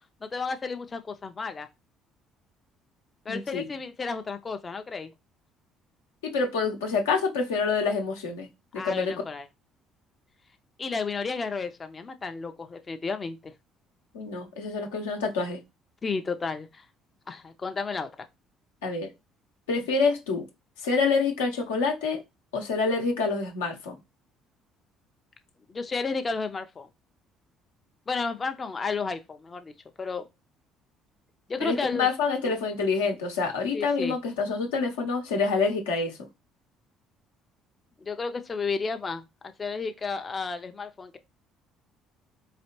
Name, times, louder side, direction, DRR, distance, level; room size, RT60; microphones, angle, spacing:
voice 1, 0.2-1.7 3.3-5.1 8.7-9.5 10.8-13.5 16.0-16.9 17.3-18.3 25.7-26.9 28.1-29.7 30.0-30.3 31.5-32.1 33.7-34.2 38.0-41.2, left 4 dB, 35° left, 0.4 m, -32 dB
voice 2, 3.3-3.6 6.2-8.5 8.7-9.1 14.1-15.6 18.8-19.1 19.7-20.4 20.8-22.2 22.5-23.9 31.6-36.2, left 4 dB, 85° left, 0.8 m, -27 dB
4.1 x 2.8 x 2.9 m
hypercardioid pair, 55°, 0 cm